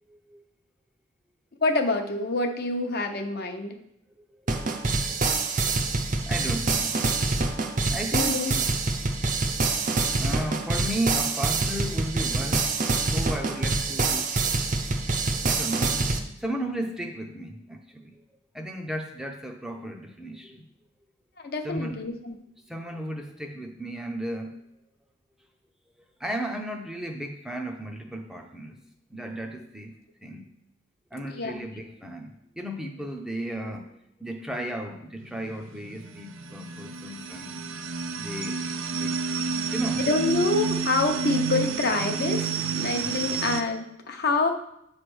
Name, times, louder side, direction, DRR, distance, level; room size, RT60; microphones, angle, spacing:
voice 1, 0.1-0.4 4.3-4.8 6.3-7.0 7.9-8.4 10.2-12.7 13.1-14.3 15.4-16.0 16.4-18.2 18.5-20.6 21.6-22.0 22.7-24.6 26.2-28.8 29.1-29.9 30.2-30.5 31.1-33.9 34.2-37.5 38.2-39.3 39.7-40.1, right 1 dB, 5° right, 3 dB, 0.6 m, -34 dB
voice 2, 1.6-3.7 8.1-8.5 21.4-22.4 31.3-31.7 40.0-44.5, left 3 dB, 50° left, 5 dB, 0.8 m, -27 dB
sound 1, 4.5-16.2, right 3 dB, 40° right, 0.7 m, -26 dB
sound 2, 35.2-43.6, right 5 dB, 85° right, 0.6 m, -30 dB
8.3 x 3.3 x 6.2 m, 0.79 s
head